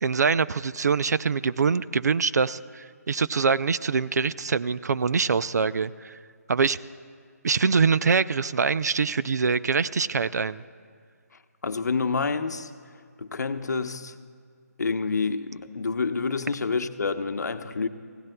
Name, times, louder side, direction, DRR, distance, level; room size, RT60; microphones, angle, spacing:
voice 1, 0.0-6.2 6.5-6.8 7.4-10.6, right 5 dB, 75° right, 16 dB, 0.4 m, -24 dB
voice 2, 11.6-12.7 13.2-14.2 14.8-17.9, left 4 dB, 80° left, 9 dB, 0.8 m, -28 dB
28.5 x 16.5 x 2.2 m, 2.2 s
hypercardioid pair, 175°, 9 cm